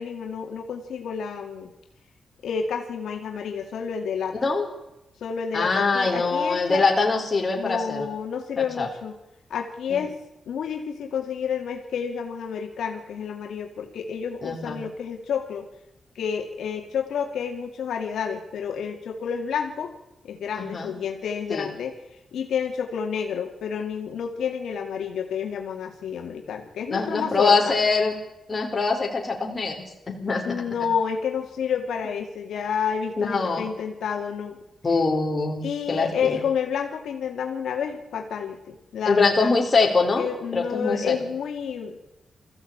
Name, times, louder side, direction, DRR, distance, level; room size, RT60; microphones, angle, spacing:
voice 1, 0.0-1.7 2.4-4.4 5.2-6.8 7.6-9.2 9.5-10.2 10.5-15.7 16.2-19.9 20.2-21.9 22.3-27.8 30.4-34.6 35.6-39.5 40.2-42.0, left 7 dB, 90° left, 2 dB, 2.4 m, -29 dB
voice 2, 5.5-8.1 8.8-8.9 9.9-10.0 14.4-14.8 20.6-20.9 21.5-21.7 26.9-28.2 28.5-30.6 33.2-33.7 34.8-36.4 39.1-40.3 40.5-41.1, left 4 dB, 30° left, 2 dB, 4.4 m, -23 dB
20.0 x 15.0 x 8.8 m, 0.93 s
cardioid pair, 110°, 0 cm